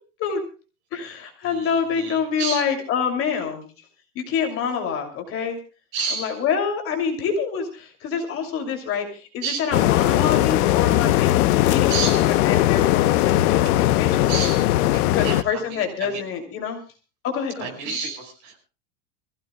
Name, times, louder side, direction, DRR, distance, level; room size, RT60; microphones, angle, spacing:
voice 1, 0.9-3.7 4.1-5.6 6.2-14.4 15.1-16.8 17.2-17.7, left 6 dB, 30° left, 4 dB, 2.8 m, -27 dB
voice 2, 1.4-2.6 5.9-6.4 9.4-9.8 11.9-12.3 14.3-16.2 17.6-18.6, right 5 dB, 40° right, 3 dB, 5.2 m, -31 dB
sound 1, 9.7-15.4, left 15 dB, 85° left, 1.0 m, -19 dB
26.5 x 16.0 x 2.3 m, 0.34 s
supercardioid pair, 170°, 44 cm